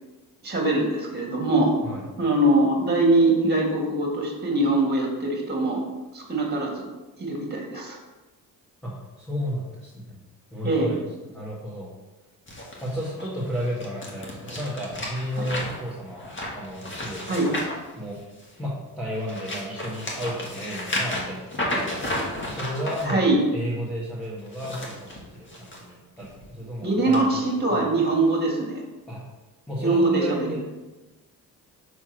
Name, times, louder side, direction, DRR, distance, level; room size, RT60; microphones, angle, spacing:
voice 1, 0.4-1.7 2.2-5.8 6.1-6.9 7.2-8.0 10.6-10.9 17.3-17.5 23.0-23.4 26.8-28.8 29.8-30.5, right 2 dB, 25° right, 0 dB, 1.9 m, -22 dB
voice 2, 8.8-10.1 10.5-11.9 12.8-17.5 18.0-18.2 18.6-27.9 29.1-29.2 29.7-30.6, equal, ahead, -8 dB, 1.7 m, -33 dB
sound 1, 12.5-18.6 19.1-23.1 24.4-25.8 26.2-26.5 27.1-27.2, left 1 dB, 30° left, 1.5 m, -33 dB
6.4 x 3.5 x 4.6 m, 1.1 s
cardioid pair, 80°, 38 cm